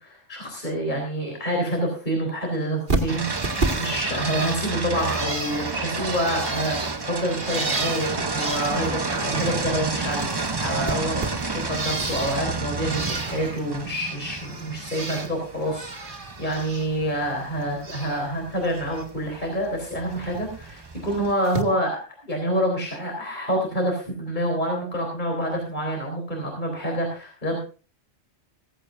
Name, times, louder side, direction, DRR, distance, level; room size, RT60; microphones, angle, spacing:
voice 1, 0.0-27.6, equal, 40° left, 1 dB, 4.1 m, -27 dB
Bird, 2.9-9.7 9.9-12.4 12.8-13.6 14.0-15.3 15.6-16.9 17.2-18.2 18.6-19.0 20.3-20.4 21.4-21.6, right 3 dB, 45° right, 2.1 m, -32 dB
sound 1, 3.1-21.3, right 3 dB, 25° right, 0.7 m, -31 dB
16.5 x 15.0 x 2.6 m, 0.35 s
omnidirectional pair, 1.2 m